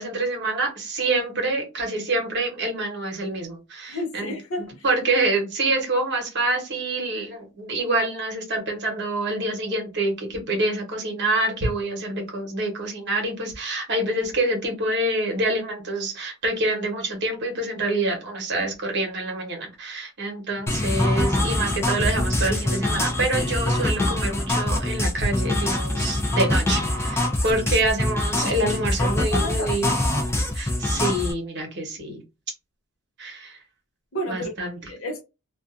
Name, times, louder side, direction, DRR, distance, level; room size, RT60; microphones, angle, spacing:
voice 1, 0.0-4.3 4.8-29.9 30.5-32.2 33.2-33.6 34.3-34.8, right 2 dB, 50° right, 1.0 m, -26 dB
voice 2, 3.9-4.8 5.7-5.8 29.0-29.9 34.1-34.5 34.9-35.2, equal, 60° left, 0.6 m, -31 dB
sound 1, 20.7-31.3, left 1 dB, 10° left, 0.4 m, -24 dB
2.4 x 2.3 x 2.5 m
head